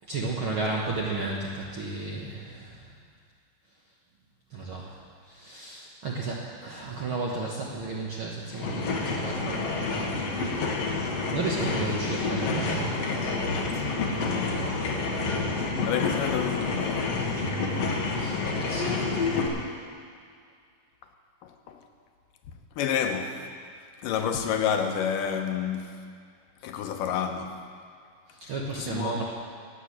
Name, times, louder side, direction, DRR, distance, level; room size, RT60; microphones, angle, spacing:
voice 1, 0.1-2.8 4.5-5.0 5.3-10.3 10.9-13.1 14.1-14.7 18.1-19.3 28.5-29.2, right 3 dB, 60° right, -3 dB, 1.4 m, -33 dB
sound 1, 8.5-19.5, left 3 dB, 55° left, 2.3 m, -29 dB
voice 2, 14.2-14.8 15.9-17.2 21.4-21.8 22.5-23.5 24.0-26.0 26.6-27.6 28.4-29.2, left 8 dB, 80° left, 5 dB, 2.5 m, -30 dB
12.5 x 8.9 x 8.4 m, 2.2 s
omnidirectional pair, 3.9 m